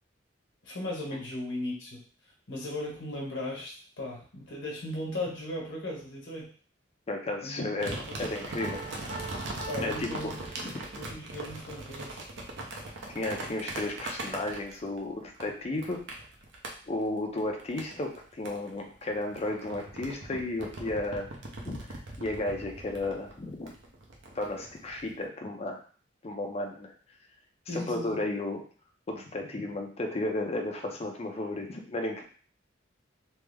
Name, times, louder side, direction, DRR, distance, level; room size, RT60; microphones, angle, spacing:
voice 1, 0.6-2.0 2.5-6.5 7.4-8.2 9.7-10.4 10.9-12.2 27.7-28.2, left 1 dB, 65° left, -3 dB, 1.2 m, -37 dB
voice 2, 7.1-8.8 9.8-10.3 10.6-10.7 13.1-16.0 16.9-21.3 21.6-21.8 22.2-23.7 24.3-25.8 26.2-26.9 27.7-28.6 29.1-32.2, left 2 dB, 30° left, 2 dB, 0.5 m, -33 dB
sound 1, 7.8-15.0 15.4-16.7 17.4-18.2 18.4-25.1, right 2 dB, 65° right, 0.6 m, -40 dB
Piano, 8.6-11.2, right 3 dB, 85° right, 1.1 m, -43 dB
3.2 x 2.0 x 3.4 m, 0.42 s
head